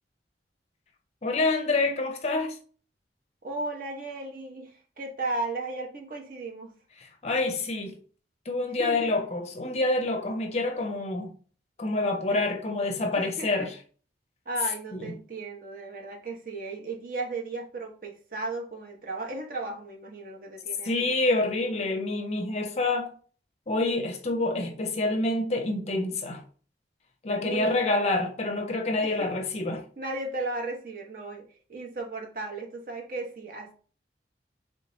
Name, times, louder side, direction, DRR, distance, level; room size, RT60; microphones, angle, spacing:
voice 1, 1.2-2.6 7.0-8.0 8.5-11.3 11.8-13.7 14.9-15.0 20.9-23.1 23.7-26.4 27.2-29.8, left 2 dB, 35° left, 0.5 m, -27 dB
voice 2, 3.4-6.7 8.7-9.1 12.3-12.4 13.2-13.7 14.5-21.1 27.4-28.0 29.0-29.3 30.0-33.7, right 2 dB, 50° right, 0.8 m, -35 dB
3.4 x 2.9 x 3.0 m
head